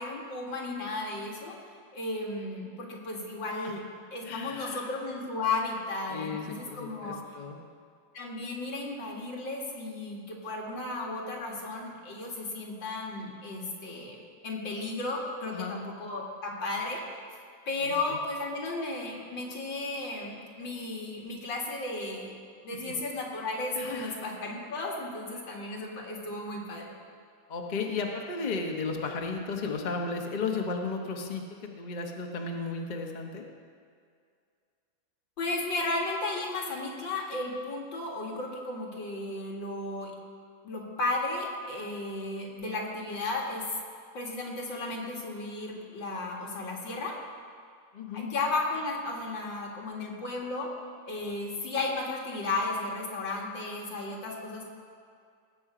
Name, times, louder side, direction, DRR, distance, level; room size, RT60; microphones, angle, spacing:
voice 1, 0.0-1.5 1.9-3.8 4.1-7.2 8.1-14.2 14.4-17.3 17.7-22.4 22.6-26.9 35.4-40.1 40.6-43.6 44.1-47.2 48.1-50.7 51.1-54.7, left 2 dB, 75° left, -1 dB, 2.6 m, -34 dB
voice 2, 4.2-4.9 6.1-7.6 15.4-15.8 17.8-17.9 22.8-22.9 23.7-24.2 27.5-33.4 47.9-48.3, left 4 dB, 30° left, 1 dB, 0.9 m, -34 dB
18.5 x 7.9 x 5.0 m, 2.2 s
omnidirectional pair, 2.1 m